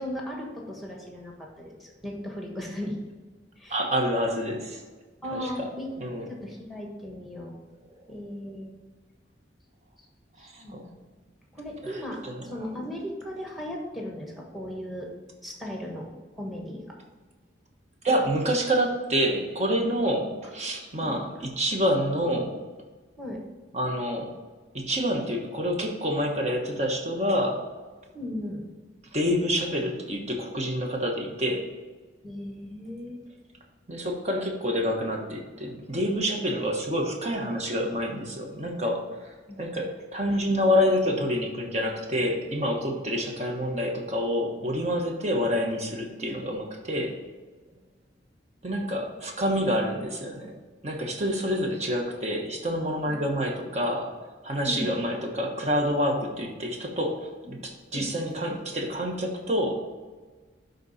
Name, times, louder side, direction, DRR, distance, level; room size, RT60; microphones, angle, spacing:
voice 1, 0.0-3.0 3.6-3.8 5.2-5.9 6.3-7.5 8.1-8.7 10.6-11.0 11.5-15.1 15.4-16.1 16.3-16.8 20.8-21.3 23.2-23.4 28.1-28.6 32.2-33.3 39.5-39.7 47.7-47.8 54.6-54.9 57.4-57.6 57.9-58.1, left 1 dB, ahead, -1 dB, 1.3 m, -37 dB
voice 2, 3.7-4.8 5.3-5.7 6.0-6.3 8.0-8.1 10.4-10.8 11.8-12.7 18.0-22.6 23.7-24.3 24.7-27.7 29.1-31.7 33.9-47.2 48.6-50.5 50.8-59.7, equal, 35° right, 1 dB, 1.2 m, -28 dB
10.5 x 4.0 x 4.2 m, 1.4 s
head